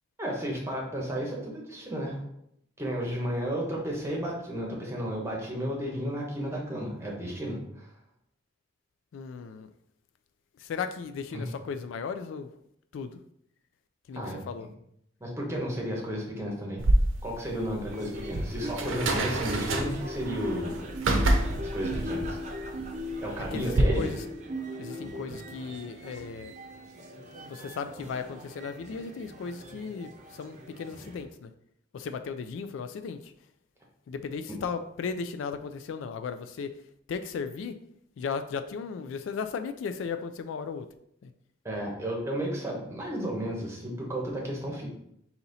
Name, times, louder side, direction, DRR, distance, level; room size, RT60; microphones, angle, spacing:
voice 1, 0.2-2.2 2.8-7.9 11.3-11.5 14.1-14.7 15.2-16.8 17.2-20.7 21.6-22.4 23.2-24.1 34.5-34.6 41.6-44.9, equal, 15° right, -2 dB, 1.0 m, -33 dB
voice 2, 9.1-9.7 10.6-12.5 12.9-13.1 14.1-14.7 23.5-24.2 24.8-26.5 27.5-31.5 31.9-33.3 34.1-36.7 37.1-37.8 38.2-40.9 41.2-41.3, left 5 dB, 75° left, 9 dB, 0.3 m, -36 dB
sound 1, 16.8-23.8, right 1 dB, 90° right, 0.7 m, -28 dB
sound 2, 17.9-31.2, equal, 35° right, 0.6 m, -39 dB
4.0 x 2.9 x 4.0 m, 0.75 s
head